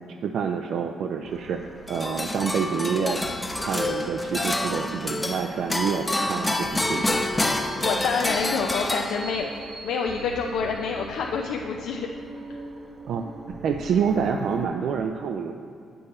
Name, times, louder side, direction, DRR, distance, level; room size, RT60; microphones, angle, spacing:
voice 1, 0.2-1.6 1.9-3.2 3.6-7.2 13.1-15.5, right 6 dB, 70° right, 4 dB, 0.4 m, -27 dB
sound 1, 1.2-14.7, right 2 dB, 30° right, 0.7 m, -43 dB
sound 2, 1.9-9.6, left 1 dB, 15° left, 0.7 m, -27 dB
voice 2, 7.8-9.5 9.8-12.1, left 5 dB, 80° left, 1 dB, 0.5 m, -27 dB
8.4 x 6.9 x 4.2 m, 2.4 s
cardioid pair, 90°, 0 cm